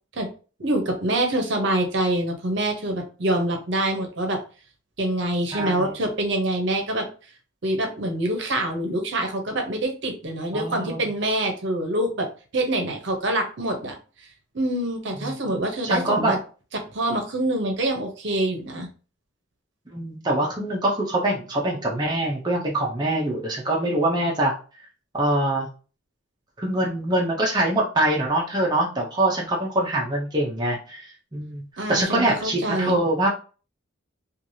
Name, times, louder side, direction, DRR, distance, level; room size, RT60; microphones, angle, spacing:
voice 1, 0.6-4.4 5.0-7.0 7.6-12.3 12.5-14.0 14.5-16.4 16.9-18.9 31.8-33.0, right 1 dB, 60° right, 4 dB, 0.7 m, -25 dB
voice 2, 5.5-6.0 10.5-11.1 15.2-15.3 15.8-16.4 19.9-24.5 25.1-25.7 26.6-33.3, right 1 dB, 20° right, -2 dB, 0.5 m, -24 dB
3.2 x 2.4 x 2.6 m, 0.36 s
head